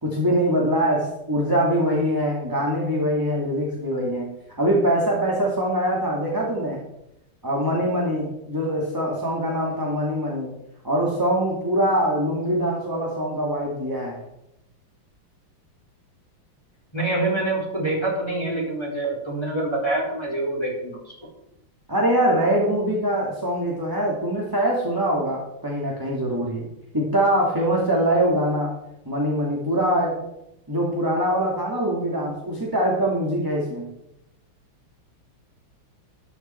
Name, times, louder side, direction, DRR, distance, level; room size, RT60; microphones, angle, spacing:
voice 1, 0.0-4.3 4.6-6.8 7.4-10.5 10.8-14.2 21.9-26.7 26.9-28.7 29.1-30.1 30.7-33.9, equal, 10° right, -4 dB, 2.3 m, -23 dB
voice 2, 16.9-21.0, right 2 dB, 10° left, -3 dB, 4.1 m, -25 dB
13.5 x 11.5 x 4.5 m, 0.85 s
omnidirectional pair, 2.3 m